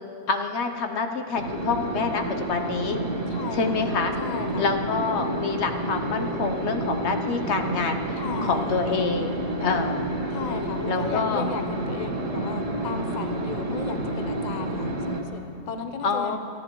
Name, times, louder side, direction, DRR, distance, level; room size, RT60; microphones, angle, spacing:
voice 1, 0.3-3.0 3.5-4.1 4.6-10.1 10.9-11.5 16.0-16.4, left 4 dB, 65° left, 5 dB, 1.0 m, -27 dB
sound 1, 1.3-15.2, right 1 dB, 75° right, 1.5 m, -29 dB
voice 2, 3.3-3.9 4.2-4.8 8.2-8.8 10.3-16.4, left 5 dB, 40° left, 6 dB, 0.7 m, -35 dB
28.5 x 10.0 x 3.0 m, 2.8 s
omnidirectional pair, 1.3 m